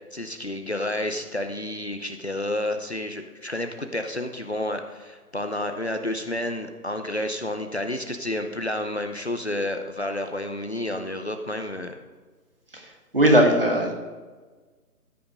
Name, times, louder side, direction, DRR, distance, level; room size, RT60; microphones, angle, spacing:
voice 1, 0.1-12.0, left 1 dB, 45° left, 6 dB, 0.7 m, -30 dB
voice 2, 12.7-13.9, right 1 dB, 35° right, 2 dB, 1.5 m, -19 dB
13.5 x 5.7 x 5.1 m, 1.4 s
figure-of-eight pair, 180°, 47 cm